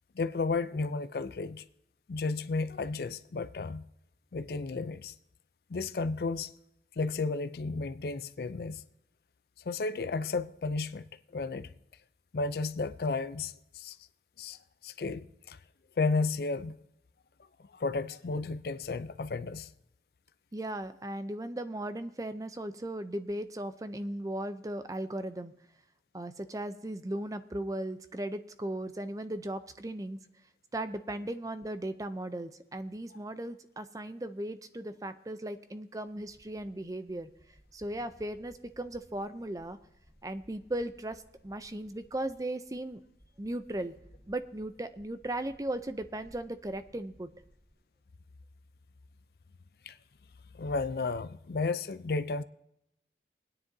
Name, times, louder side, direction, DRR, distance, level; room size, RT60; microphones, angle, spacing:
voice 1, 0.1-1.6 2.1-3.8 4.3-5.1 5.7-6.5 7.0-8.8 9.7-11.0 11.3-11.7 12.3-14.0 14.4-14.6 14.8-15.6 16.0-16.8 17.7-19.7 49.9-50.0 50.5-52.4, left 3 dB, 60° left, 0.4 m, -33 dB
voice 2, 20.5-25.5 26.1-30.2 30.7-37.3 37.7-39.8 40.2-43.0 43.4-43.9 44.3-47.3, right 1 dB, 20° right, 0.5 m, -37 dB
sound 1, 36.2-47.7, equal, 10° left, 3.8 m, -61 dB
22.5 x 9.7 x 2.7 m
head